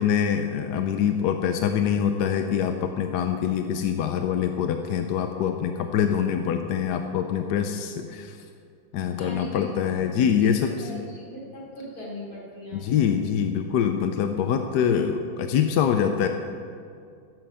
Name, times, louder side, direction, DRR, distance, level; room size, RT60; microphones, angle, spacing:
voice 1, 0.0-8.4 8.9-10.7 12.7-16.3, left 8 dB, 70° left, 6 dB, 1.1 m, -24 dB
voice 2, 9.2-9.7 10.0-13.1, left 1 dB, 45° left, -6 dB, 4.4 m, -40 dB
15.5 x 7.8 x 6.9 m, 2.5 s
omnidirectional pair, 2.2 m